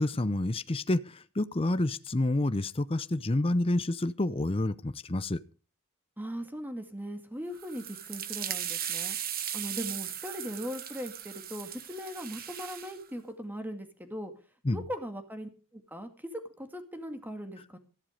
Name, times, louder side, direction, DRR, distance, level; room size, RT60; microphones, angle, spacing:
voice 1, 0.0-5.4 14.6-14.8, left 2 dB, 25° left, 13 dB, 0.6 m, -29 dB
voice 2, 6.2-9.2 9.5-14.3 14.7-17.8, equal, 10° right, 7 dB, 2.1 m, -39 dB
sound 1, 7.5-13.0, right 10 dB, 40° right, 1.2 m, -37 dB
14.5 x 11.5 x 5.1 m, 0.37 s
head